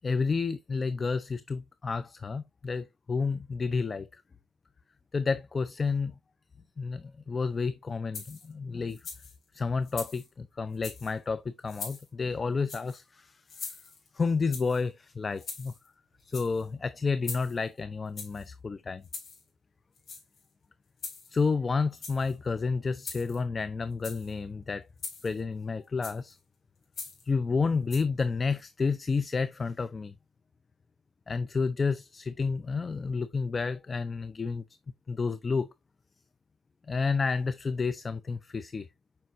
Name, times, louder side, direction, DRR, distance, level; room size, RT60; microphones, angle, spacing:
voice 1, 0.0-4.1 5.1-6.1 6.8-9.0 9.5-13.4 14.1-15.7 16.2-19.0 21.3-24.9 25.2-26.4 27.3-30.1 31.3-34.6 35.1-35.7 36.9-38.9, left 4 dB, 35° left, 0.5 m, -30 dB
sound 1, 8.1-8.5 8.9-9.4 9.9-10.3 10.7-11.1 11.7-12.1 12.7-13.0 13.5-14.1 14.5-14.8 15.4-15.9 16.2-16.7 17.2-17.7 18.2-18.5 19.0-19.4 20.0-20.5 21.0-21.5 21.9-22.3 23.0-23.4 23.9-24.3 25.0-25.4 26.0-26.3 26.9-27.3 27.9-28.0, left 4 dB, 50° left, 4.0 m, -42 dB
7.6 x 5.7 x 2.6 m
cardioid pair, 90°, 0 cm